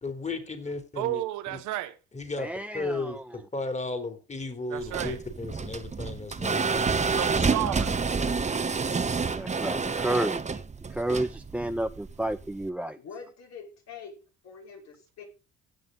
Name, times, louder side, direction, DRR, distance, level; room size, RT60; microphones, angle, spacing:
voice 1, 0.0-1.2 1.5-1.6 2.1-2.5 2.7-3.2 3.5-6.9, left 3 dB, 25° left, 3.4 m, -34 dB
voice 2, 1.0-1.9 4.7-5.2 7.1-8.0, right 15 dB, 80° right, 1.2 m, -32 dB
voice 3, 2.4-3.2 7.6-7.8 9.3-10.6 10.9-13.0, right 1 dB, 5° right, 0.5 m, -31 dB
sound 1, 4.8-12.7, right 4 dB, 25° right, 1.0 m, -29 dB
voice 4, 13.0-14.2 14.4-15.3, left 6 dB, 65° left, 5.5 m, -44 dB
16.5 x 6.6 x 3.9 m
supercardioid pair, 75°, 29 cm